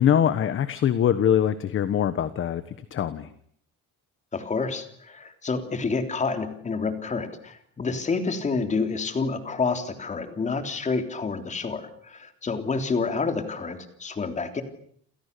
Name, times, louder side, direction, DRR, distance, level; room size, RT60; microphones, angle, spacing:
voice 1, 0.0-2.6 2.9-3.3, left 9 dB, 35° left, 13 dB, 1.3 m, -23 dB
voice 2, 4.3-14.6, left 4 dB, 20° left, 8 dB, 3.3 m, -28 dB
28.5 x 28.5 x 6.9 m, 0.63 s
cardioid pair, 175°, 34 cm